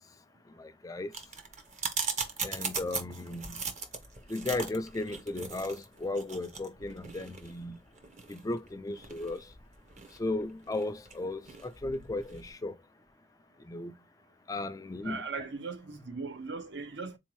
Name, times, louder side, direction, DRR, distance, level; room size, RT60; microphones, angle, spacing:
voice 1, 0.6-1.1 2.4-3.6 4.3-7.8 8.3-9.5 10.2-12.7 13.7-13.9 14.5-15.2, left 2 dB, 20° left, 0.3 m, -35 dB
sound 1, 1.1-12.5, right 5 dB, 45° right, 0.7 m, -39 dB
voice 2, 15.0-17.2, right 4 dB, 85° right, 0.7 m, -38 dB
3.8 x 2.6 x 3.0 m
head